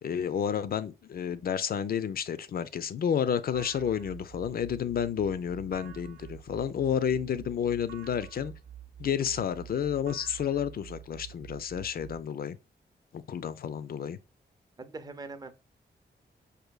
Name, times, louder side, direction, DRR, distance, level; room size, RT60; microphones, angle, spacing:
voice 1, 0.0-8.5 9.0-12.6 13.1-14.2, left 8 dB, 55° left, 0.4 m, -30 dB
sound 1, 3.5-12.2, right 11 dB, 75° right, 0.5 m, -47 dB
voice 2, 14.8-15.5, right 3 dB, 20° right, 0.5 m, -42 dB
5.0 x 2.6 x 2.2 m
wide cardioid pair, 130°, 18 cm